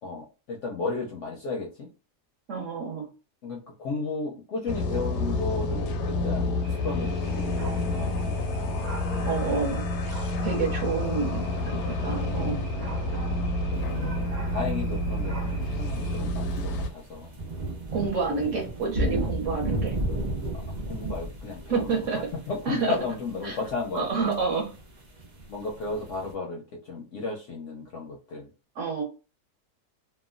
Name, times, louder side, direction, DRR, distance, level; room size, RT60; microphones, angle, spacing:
voice 1, 0.0-1.9 3.4-8.7 11.1-11.2 12.3-12.6 13.7-14.3 14.5-17.4 19.5-19.6 20.5-22.0 22.5-24.3 25.5-28.5, left 3 dB, 65° left, -1 dB, 0.8 m, -34 dB
voice 2, 2.5-3.1 9.2-9.9 10.4-12.6 17.9-19.9 21.7-22.3 22.7-22.9 23.4-23.6 23.9-24.7 28.8-29.0, right 4 dB, 60° right, 1 dB, 0.9 m, -29 dB
sound 1, 4.7-16.9, left 2 dB, 80° left, 1.1 m, -29 dB
sound 2, 6.6-16.2, right 1 dB, 35° right, 0.7 m, -45 dB
sound 3, 14.7-14.9 16.3-26.3, right 2 dB, 85° right, 0.4 m, -33 dB
2.9 x 2.2 x 2.4 m, 0.32 s
omnidirectional pair, 1.7 m